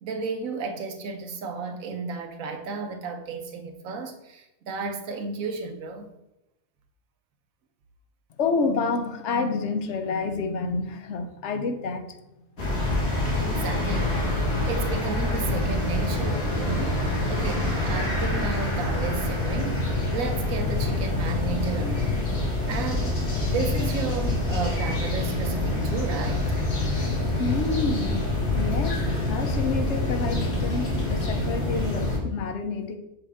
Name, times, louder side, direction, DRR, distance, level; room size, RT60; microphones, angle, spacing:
voice 1, 0.0-6.1 13.4-14.3 14.7-22.2 22.7-23.2 23.4-26.5, right 4 dB, 70° right, 1.2 m, -33 dB
voice 2, 8.4-12.2 27.4-28.2 28.5-33.0, left 4 dB, 60° left, 1.0 m, -28 dB
sound 1, 12.6-32.2, left 2 dB, 75° left, 2.2 m, -26 dB
6.9 x 5.8 x 3.5 m
omnidirectional pair, 1.5 m